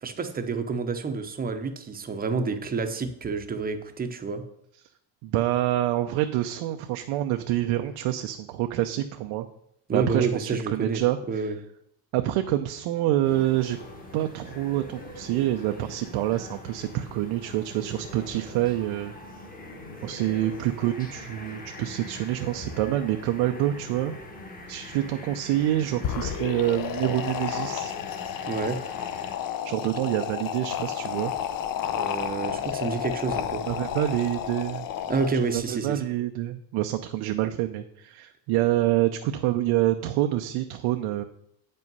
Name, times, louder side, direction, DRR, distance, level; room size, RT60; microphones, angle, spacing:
voice 1, 0.0-4.4 9.9-11.0 11.3-11.6 28.5-28.8 31.9-33.6 35.1-36.0, right 4 dB, 20° right, 7 dB, 0.7 m, -29 dB
voice 2, 5.2-9.5 9.9-11.5 12.1-13.8 14.1-19.1 20.0-24.1 24.7-27.9 29.6-31.3 33.7-34.9 35.5-41.2, right 14 dB, 90° right, 6 dB, 0.7 m, -27 dB
sound 1, 13.2-29.4, left 2 dB, 20° left, 1.2 m, -43 dB
sound 2, 25.9-35.6, left 10 dB, 45° left, 0.6 m, -32 dB
8.4 x 5.4 x 5.4 m, 0.75 s
cardioid pair, 145°, 47 cm